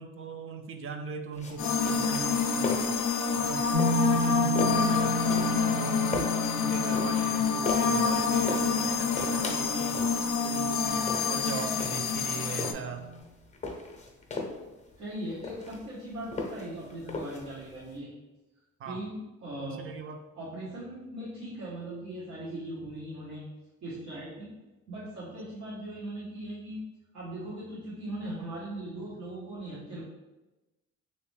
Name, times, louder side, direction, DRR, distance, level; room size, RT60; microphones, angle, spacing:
voice 1, 0.0-3.0 3.3-6.3 6.6-10.0 10.4-13.1 18.8-19.0 19.6-20.2, right 5 dB, 45° right, 6 dB, 0.4 m, -40 dB
sound 1, 1.3-17.9, left 3 dB, 25° left, 0.7 m, -39 dB
sound 2, 1.6-12.7, left 5 dB, 75° left, 0.5 m, -27 dB
sound 3, 3.7-13.2, right 1 dB, 30° right, 0.8 m, -35 dB
voice 2, 15.0-18.1 18.8-19.9 20.3-23.4 23.8-24.5 24.9-26.8 27.1-30.0, right 1 dB, 70° right, -9 dB, 1.2 m, -39 dB
3.0 x 2.9 x 3.2 m, 1.1 s
cardioid pair, 90°, 30 cm